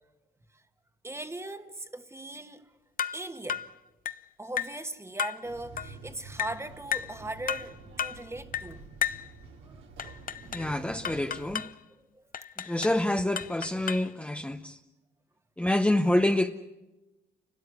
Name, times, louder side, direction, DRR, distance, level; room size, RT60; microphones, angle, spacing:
voice 1, 1.0-2.7 3.1-3.7 4.4-8.8 9.7-9.8 12.1-12.3, right 2 dB, 15° right, 1.4 m, -39 dB
sound 1, 3.0-3.2 3.5-3.7 4.1-4.2 4.6-4.8 5.2-5.4 5.8-5.9 6.4-6.6 6.9-7.2 7.5-7.7 8.0-8.2 8.5-8.7 9.0-9.3 10.0-10.7 11.0-11.7 12.3-13.0 13.4-14.1, left 8 dB, 45° left, 0.7 m, -33 dB
sound 2, 5.4-11.5, right 3 dB, 75° right, 2.7 m, -48 dB
voice 2, 10.5-11.6 12.6-14.8 15.6-16.5, left 1 dB, 5° left, 0.8 m, -27 dB
29.5 x 12.5 x 9.6 m
cardioid pair, 90°, 20 cm